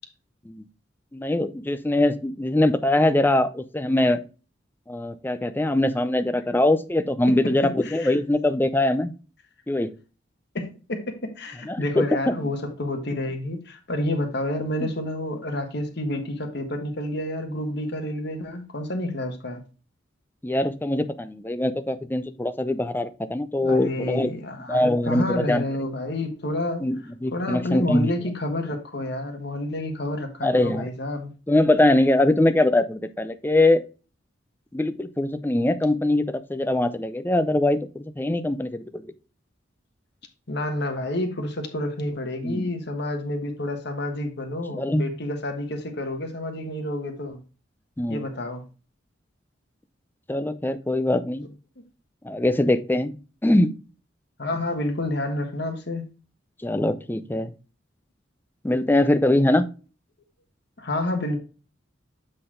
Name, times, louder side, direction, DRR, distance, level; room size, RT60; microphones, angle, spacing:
voice 1, 1.1-4.2 4.9-9.1 9.7-9.9 11.7-12.5 14.8-14.9 20.4-24.3 24.7-25.6 26.8-28.1 30.4-30.8 31.5-33.8 34.7-39.0 42.4-42.7 44.7-45.1 48.0-48.2 50.3-51.5 52.2-53.2 53.4-53.8 56.6-57.5 58.6-59.7, left 1 dB, 10° left, 0.5 m, -22 dB
voice 2, 7.3-8.2 10.5-19.6 23.6-26.9 27.3-31.3 40.5-47.4 48.1-48.6 54.4-56.0 60.8-61.4, left 1 dB, 65° left, 1.3 m, -29 dB
7.8 x 4.1 x 3.7 m
head